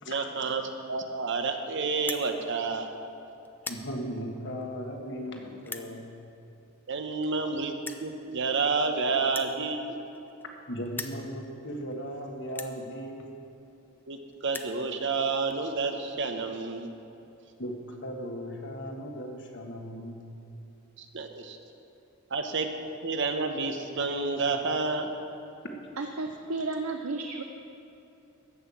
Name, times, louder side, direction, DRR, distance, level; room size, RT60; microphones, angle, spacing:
voice 1, 0.1-2.9 6.9-7.7 8.0-10.0 14.1-16.9 21.0-21.6 22.3-22.7 23.0-25.1, right 4 dB, 60° right, 5 dB, 1.0 m, -29 dB
sound 1, 2.0-2.3 2.9-3.1 3.5-3.9 4.6-4.7 5.6-5.9 6.9-7.0 7.2-7.3 7.8-8.1 9.2-10.6 10.9-11.2 11.9-12.0 12.5-12.8 13.7-13.8 14.0-14.1 14.3-14.8, left 3 dB, 10° left, 0.5 m, -39 dB
voice 2, 3.7-6.1 10.7-13.2 17.6-20.2, equal, 55° left, 2 dB, 1.5 m, -37 dB
voice 3, 26.0-27.4, right 3 dB, 85° right, 4 dB, 0.7 m, -33 dB
14.0 x 5.9 x 8.5 m, 2.8 s
head